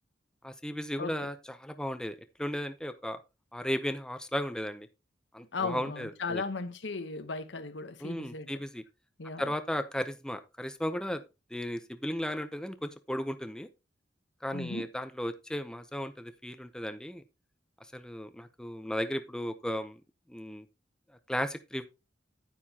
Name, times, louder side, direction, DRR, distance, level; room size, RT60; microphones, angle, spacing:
voice 1, 0.4-3.2 3.5-4.9 5.3-6.4 8.0-8.8 9.4-11.2 11.5-13.7 14.4-17.2 17.9-20.0 20.3-20.7 21.3-21.9, equal, 5° left, 0.6 m, -35 dB
voice 2, 5.5-8.5 9.2-9.5 14.5-14.9, left 4 dB, 80° left, 1.0 m, -36 dB
9.4 x 9.3 x 2.8 m
head